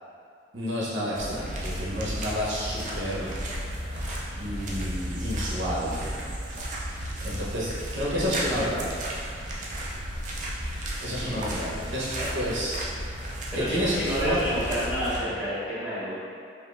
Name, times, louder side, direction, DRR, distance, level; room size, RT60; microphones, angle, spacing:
voice 1, 0.5-3.3 4.4-6.2 6.8-8.9 11.0-12.8 13.5-13.9 14.2-14.4, equal, 90° right, -7 dB, 1.1 m, -30 dB
sound 1, 1.1-15.2, right 1 dB, 45° right, 0.5 m, -33 dB
voice 2, 11.2-11.5 12.2-12.3 13.5-16.1, equal, 10° right, -12 dB, 1.4 m, -29 dB
5.1 x 2.8 x 2.6 m, 2.3 s
head